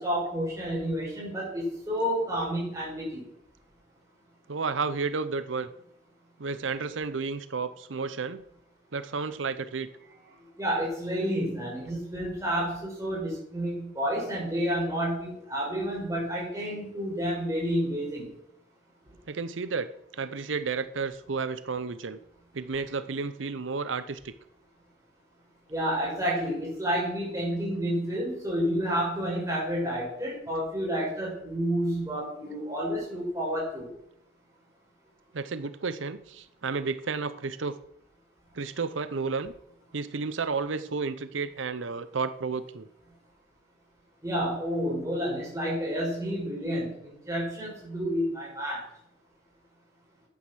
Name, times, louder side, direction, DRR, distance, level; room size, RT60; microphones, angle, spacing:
voice 1, 0.0-3.2 10.6-18.3 25.7-33.9 44.2-48.8, equal, 15° right, -4 dB, 6.2 m, -30 dB
voice 2, 4.5-5.7 6.4-8.4 8.9-9.9 19.3-19.9 20.1-22.2 22.5-24.3 35.3-37.8 38.5-39.5 39.9-42.9, right 4 dB, 85° right, 13 dB, 0.7 m, -32 dB
11.5 x 9.5 x 6.2 m, 0.75 s
head